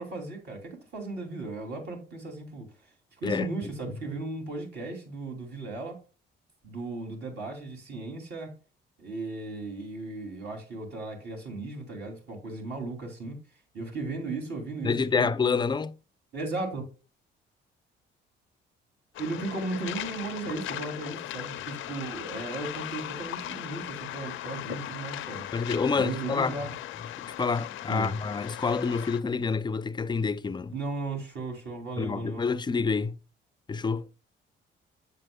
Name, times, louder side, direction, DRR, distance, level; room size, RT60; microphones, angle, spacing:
voice 1, 0.0-2.7 3.2-6.0 6.6-8.5 9.0-13.4 13.7-15.3 16.3-16.8 19.2-25.5 25.9-26.7 27.9-28.1 30.7-32.4, right 3 dB, 55° right, 2.8 m, -36 dB
voice 2, 14.8-15.9 25.5-26.6 27.2-30.7 32.0-33.2 33.7-34.1, left 5 dB, 20° left, 0.4 m, -28 dB
Waves surf, 19.1-29.2, left 13 dB, 80° left, 0.5 m, -38 dB
7.6 x 7.2 x 2.2 m
cardioid pair, 90°, 20 cm